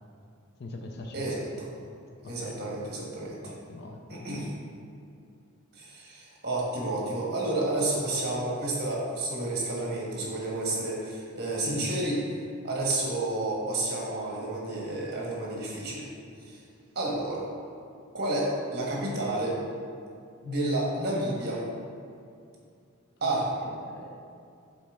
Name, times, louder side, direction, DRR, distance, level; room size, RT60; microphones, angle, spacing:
voice 1, 0.6-1.5 2.2-2.6 3.4-4.3 11.6-11.9 23.2-23.4 23.6-24.2, left 2 dB, 45° left, 2 dB, 0.5 m, -42 dB
voice 2, 1.1-1.7 2.2-3.4 4.1-4.5 5.7-12.2 12.6-16.1 16.5-16.6 16.9-17.5 18.1-19.6 20.4-21.6 23.2-23.5, right 2 dB, 45° right, -4 dB, 1.4 m, -30 dB
7.0 x 4.2 x 3.6 m, 2.4 s
head